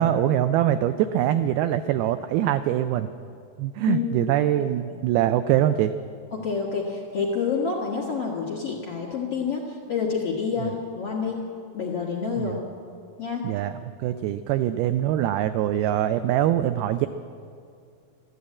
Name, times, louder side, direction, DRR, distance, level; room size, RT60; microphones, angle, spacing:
voice 1, 0.0-3.1 3.6-5.9 10.6-10.7 12.4-12.6 13.4-13.7 14.0-17.1, right 12 dB, 85° right, 11 dB, 2.2 m, -23 dB
voice 2, 6.3-11.4 11.7-12.6 13.2-13.5, left 5 dB, 50° left, -3 dB, 1.8 m, -28 dB
14.0 x 12.0 x 8.6 m, 2.4 s
omnidirectional pair, 4.8 m